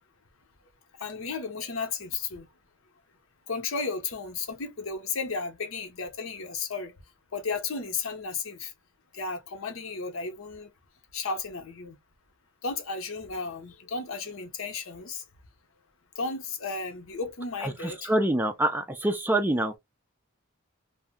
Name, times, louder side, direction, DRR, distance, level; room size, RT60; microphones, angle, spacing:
voice 1, 1.0-2.5 3.5-6.9 7.3-8.7 9.1-10.7 11.1-12.0 12.6-15.2 16.2-18.1, left 4 dB, 75° left, 0.8 m, -34 dB
voice 2, 17.6-19.8, right 1 dB, 10° right, 0.3 m, -26 dB
2.6 x 2.0 x 3.4 m
head